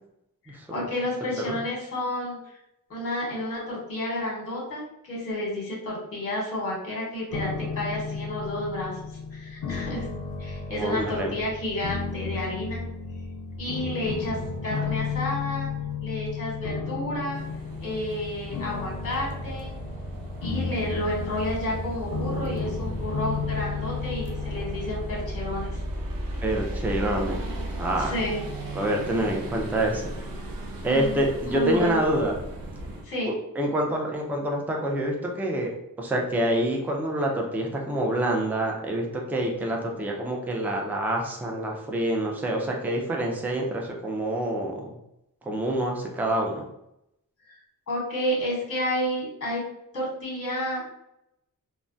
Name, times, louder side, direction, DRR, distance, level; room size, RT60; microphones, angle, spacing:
voice 1, 0.5-2.4 2.9-9.0 9.3-10.1 10.4-12.8 13.6-14.4 14.6-15.7 16.0-17.4 17.8-19.7 20.4-25.8 28.0-28.4 30.9-32.0 33.0-33.3 47.5-47.6 47.9-49.6 49.9-50.8, left 1 dB, 40° left, -3 dB, 1.0 m, -31 dB
sound 1, 7.3-26.3, left 5 dB, 65° left, 0.5 m, -33 dB
voice 2, 10.7-11.3 26.4-27.4 27.8-28.1 28.7-30.0 30.8-32.4 33.3-44.8 45.5-46.6, right 1 dB, 5° right, 0 dB, 0.3 m, -27 dB
sound 2, 17.3-33.1, right 1 dB, 80° right, 0.6 m, -36 dB
3.3 x 2.1 x 2.5 m, 0.81 s
wide cardioid pair, 180°, 34 cm